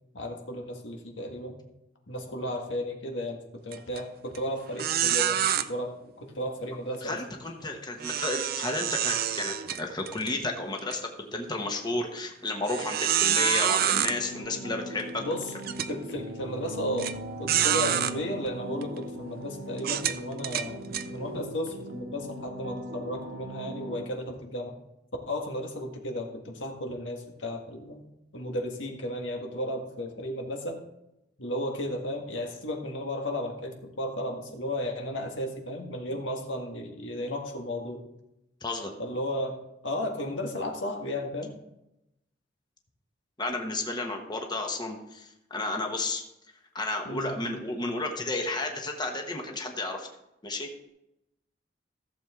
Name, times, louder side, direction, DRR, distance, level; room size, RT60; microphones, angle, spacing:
voice 1, 0.1-1.6 2.1-3.4 3.6-7.2 15.2-15.5 15.9-17.1 17.4-24.7 25.3-28.1 28.3-30.8 31.4-38.0 39.0-39.5 39.8-41.5 47.0-47.3, left 1 dB, 85° left, 2 dB, 1.7 m, -34 dB
sound 1, 3.7-4.0 4.3-4.4 4.8-5.6 8.0-10.3 10.8-11.0 11.6-11.7 12.7-14.1 15.0-15.1 15.6-15.9 17.0-17.1 17.5-18.1 18.8-19.0 19.8-21.1, right 10 dB, 55° right, 0.5 m, -27 dB
voice 2, 7.0-15.2 38.6-38.9 43.4-46.2 46.7-50.1 50.4-50.9, left 2 dB, 25° left, 2 dB, 1.2 m, -32 dB
sound 2, 13.6-24.1, equal, 85° right, 1.5 m, -40 dB
15.0 x 7.3 x 3.7 m, 0.87 s
head